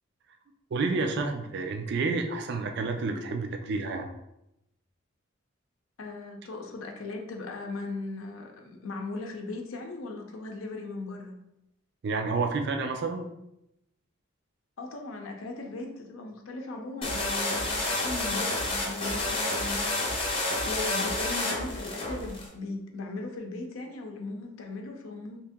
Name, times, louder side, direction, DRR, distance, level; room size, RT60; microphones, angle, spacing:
voice 1, 0.7-4.1 12.0-13.3, right 3 dB, 55° right, 4 dB, 0.3 m, -29 dB
voice 2, 6.0-11.4 14.8-25.4, left 3 dB, 80° left, 3 dB, 0.5 m, -38 dB
sound 1, 17.0-22.5, left 2 dB, 25° left, 0.7 m, -30 dB
2.9 x 2.6 x 3.5 m, 0.85 s
head